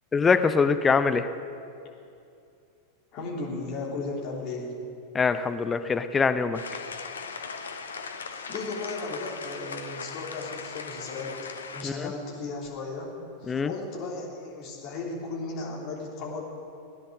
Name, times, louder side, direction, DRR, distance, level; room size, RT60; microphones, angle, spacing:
voice 1, 0.1-1.3 5.1-6.6 11.8-12.1 13.5-13.7, left 5 dB, 15° left, 10 dB, 0.5 m, -23 dB
voice 2, 3.1-4.7 8.2-11.3 11.7-13.1 13.4-16.5, left 3 dB, 40° left, -3 dB, 3.3 m, -35 dB
sound 1, 6.5-11.8, left 5 dB, 70° left, 0.9 m, -38 dB
16.5 x 10.0 x 6.5 m, 2.6 s
figure-of-eight pair, 90°, 0 cm